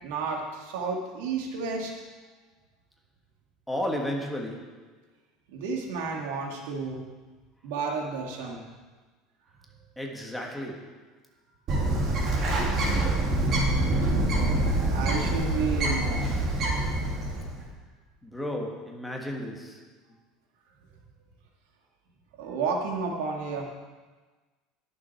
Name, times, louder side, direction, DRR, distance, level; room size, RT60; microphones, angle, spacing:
voice 1, 0.0-1.9 5.5-7.0 7.6-8.6 14.9-16.3 22.4-23.6, right 4 dB, 85° right, 0 dB, 2.5 m, -31 dB
voice 2, 3.7-4.8 10.0-11.0 18.2-19.9, left 1 dB, 5° left, 0 dB, 1.6 m, -33 dB
Bird, 11.7-17.6, right 1 dB, 35° right, 2.7 m, -25 dB
21.5 x 7.3 x 4.5 m, 1.3 s
cardioid pair, 155°, 0 cm